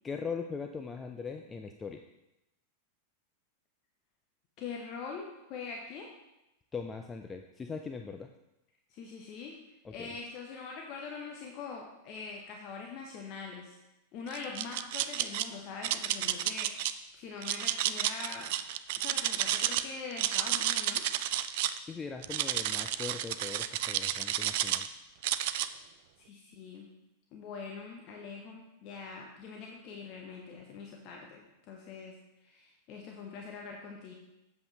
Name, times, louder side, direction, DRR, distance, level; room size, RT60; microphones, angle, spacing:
voice 1, 0.0-2.0 6.7-8.3 9.8-10.2 21.8-24.9, left 5 dB, 15° left, 5 dB, 0.4 m, -40 dB
voice 2, 4.6-6.1 8.9-9.6 9.9-13.8 14.1-18.6 19.0-21.0 26.2-26.9 27.3-32.1 32.4-34.1, left 4 dB, 40° left, 0 dB, 1.0 m, -43 dB
sound 1, 14.3-15.4 15.8-16.9 17.4-19.8 20.1-21.8 22.2-24.9 25.2-25.7, right 12 dB, 50° right, 0.3 m, -31 dB
7.7 x 7.3 x 3.1 m, 0.92 s
figure-of-eight pair, 90°, 0 cm